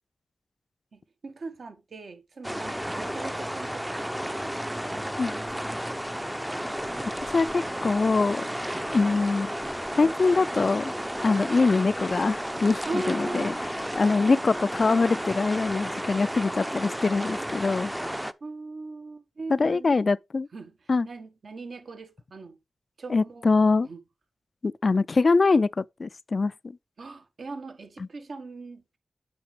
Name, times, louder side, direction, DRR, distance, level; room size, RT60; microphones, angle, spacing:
voice 1, 0.9-5.9 12.8-13.5 14.3-14.5 18.4-19.9 20.5-20.7 21.0-22.6 23.0-24.0 27.0-28.8, right 3 dB, 70° right, 1.5 m, -40 dB
sound 1, 2.4-18.3, equal, 5° right, 0.5 m, -32 dB
voice 2, 7.3-8.4 8.9-9.5 10.0-10.9 11.2-13.5 14.0-17.9 19.5-20.5 20.9-21.1 23.1-23.9 24.6-26.8, left 3 dB, 55° left, 0.3 m, -23 dB
8.7 x 5.6 x 3.3 m
cardioid pair, 65°, 0 cm